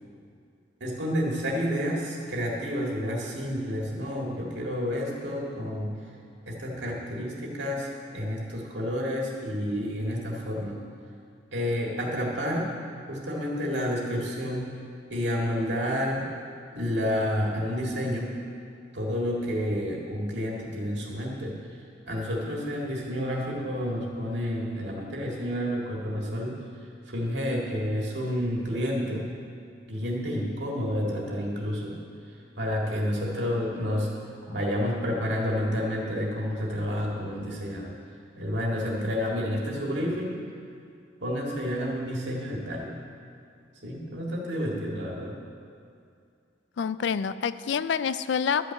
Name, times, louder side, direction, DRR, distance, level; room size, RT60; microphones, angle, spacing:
voice 1, 0.8-6.0 6.5-10.8 11.5-12.7 13.1-14.7 15.1-16.3 16.7-18.4 18.9-21.6 22.1-26.6 27.1-29.3 29.9-34.1 34.5-38.0 38.4-40.4 41.2-43.0 43.8-45.4, equal, 65° right, -2 dB, 2.0 m, -30 dB
voice 2, 46.8-48.7, left 6 dB, 70° left, 15 dB, 0.4 m, -27 dB
12.0 x 5.9 x 8.1 m, 2.4 s
head